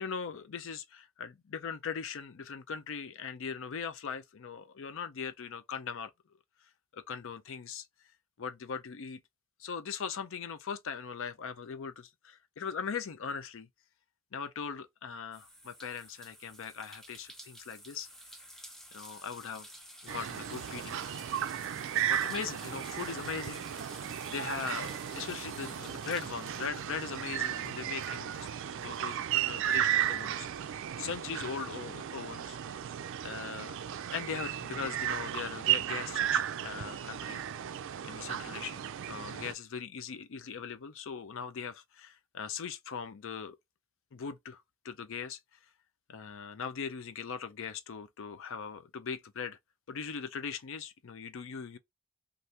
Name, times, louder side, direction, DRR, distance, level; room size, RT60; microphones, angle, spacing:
voice 1, 0.0-6.1 6.9-7.9 8.4-9.2 9.6-13.7 14.3-18.1 18.9-19.7 20.0-21.0 22.1-23.9 24.3-28.5 28.7-32.6 33.2-33.8 34.1-37.4 38.0-43.6 44.1-45.4 46.1-49.6 49.9-51.8, left 6 dB, 65° left, 0.5 m, -40 dB
sound 1, 15.3-29.4 29.7-30.9, equal, ahead, 0.5 m, -52 dB
sound 2, 20.1-39.5, right 10 dB, 60° right, 0.3 m, -35 dB
2.8 x 2.6 x 3.2 m
head